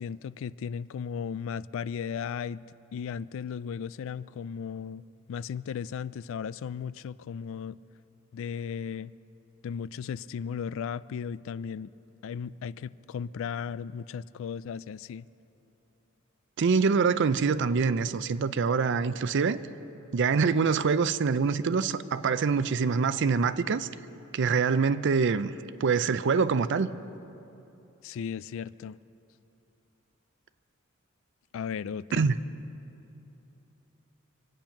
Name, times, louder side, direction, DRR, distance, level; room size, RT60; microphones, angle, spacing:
voice 1, 0.0-2.6 2.9-5.0 5.3-7.8 8.3-9.1 9.6-11.9 12.2-15.3 28.0-29.0 31.5-32.3, left 7 dB, 65° left, 18 dB, 0.3 m, -36 dB
voice 2, 16.6-19.6 20.1-23.9 24.3-25.5 25.8-26.9 32.1-32.3, right 5 dB, 60° right, 14 dB, 0.5 m, -25 dB
25.5 x 8.9 x 5.8 m, 2.9 s
head